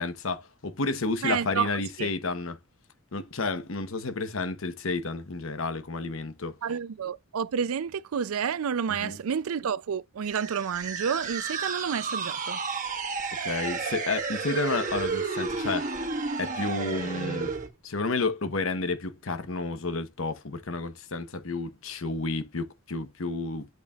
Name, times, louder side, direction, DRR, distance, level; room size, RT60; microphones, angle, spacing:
voice 1, 0.0-2.6 3.1-6.6 9.0-9.2 13.4-15.9 16.4-17.5 17.8-23.7, left 3 dB, 70° left, 1.0 m, -31 dB
voice 2, 1.2-1.7 2.0-2.1 6.6-12.6, right 7 dB, 85° right, 0.4 m, -30 dB
sound 1, 10.2-17.7, right 4 dB, 35° right, 1.4 m, -32 dB
8.1 x 5.1 x 2.3 m
head